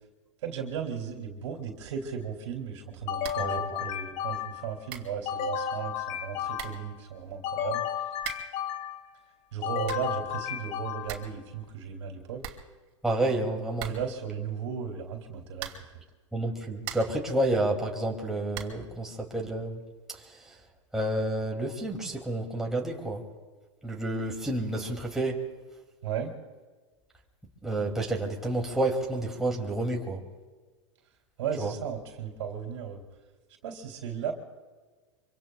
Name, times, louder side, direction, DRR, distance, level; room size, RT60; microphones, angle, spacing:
voice 1, 0.4-7.9 9.5-12.4 13.8-15.7 26.0-26.3 31.4-33.0 33.6-34.3, right 7 dB, 70° right, 2 dB, 2.7 m, -35 dB
sound 1, 3.1-4.7 5.3-7.0 7.4-9.1 9.6-11.3, left 8 dB, 45° left, 1.3 m, -33 dB
sound 2, 3.2-3.6 3.8-3.9 4.6-4.7 4.9-5.2 6.2-6.3 6.5-6.9 8.2-8.6 9.6-10.2 10.6-10.7 10.9-11.4 11.7-11.8 12.0-12.1 12.4-13.2 13.8-14.3 15.5-16.0 16.5-17.3 18.5-18.9, right 11 dB, 50° right, 2.5 m, -41 dB
voice 2, 3.4-3.9 13.0-13.9 16.3-19.8 20.1-20.2 20.9-23.2 23.8-25.4 27.6-30.2 31.6-31.7, right 2 dB, 5° right, -1 dB, 2.5 m, -30 dB
25.0 x 25.0 x 2.3 m, 1.4 s
hypercardioid pair, 115°, 16 cm